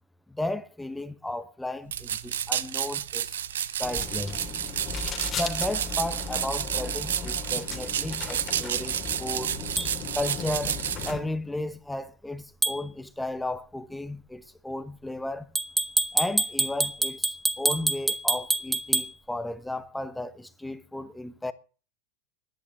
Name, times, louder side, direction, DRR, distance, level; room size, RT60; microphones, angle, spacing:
voice 1, 0.3-3.4 3.8-4.5 5.3-9.6 10.1-15.5 16.1-21.5, left 1 dB, 5° left, 1.1 m, -34 dB
sound 1, 1.9-11.1, right 10 dB, 85° right, 0.9 m, -31 dB
sound 2, 3.8-11.2, left 5 dB, 30° left, 3.0 m, -37 dB
sound 3, 9.8-9.9 12.6-12.8 15.6-19.1, right 2 dB, 10° right, 1.2 m, -26 dB
11.0 x 10.5 x 7.1 m
hypercardioid pair, 100°, 0 cm